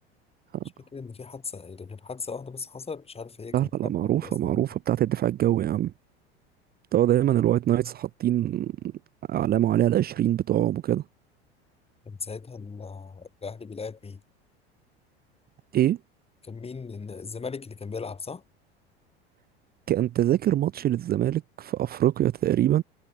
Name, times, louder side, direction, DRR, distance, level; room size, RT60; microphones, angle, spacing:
voice 1, 0.9-4.6 12.1-14.2 16.4-18.4, left 5 dB, 20° left, 4.3 m, -38 dB
voice 2, 3.5-5.9 6.9-8.7 9.3-11.0 15.7-16.0 19.9-22.8, right 12 dB, 30° right, 0.7 m, -24 dB
figure-of-eight pair, 80°, 32 cm